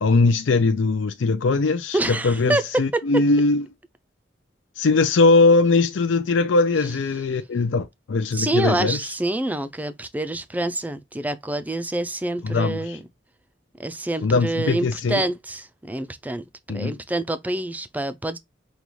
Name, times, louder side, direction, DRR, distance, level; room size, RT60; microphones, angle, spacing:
voice 1, 0.0-3.6 4.8-9.0 12.4-13.0 14.2-15.2 16.7-16.9, left 3 dB, 80° left, 0.5 m, -20 dB
voice 2, 1.9-3.2 8.3-13.0 13.8-18.4, right 1 dB, 10° right, 0.4 m, -27 dB
5.3 x 2.3 x 3.1 m
head